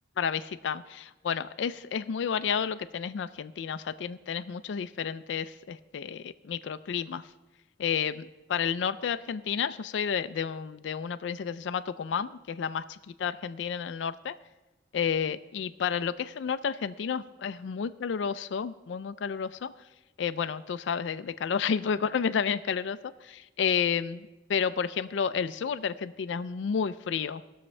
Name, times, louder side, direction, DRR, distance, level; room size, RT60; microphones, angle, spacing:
voice 1, 0.2-7.3 7.8-14.4 14.9-19.7 20.2-27.4, left 7 dB, 85° left, 12 dB, 0.4 m, -31 dB
19.0 x 6.5 x 3.2 m, 1.1 s
head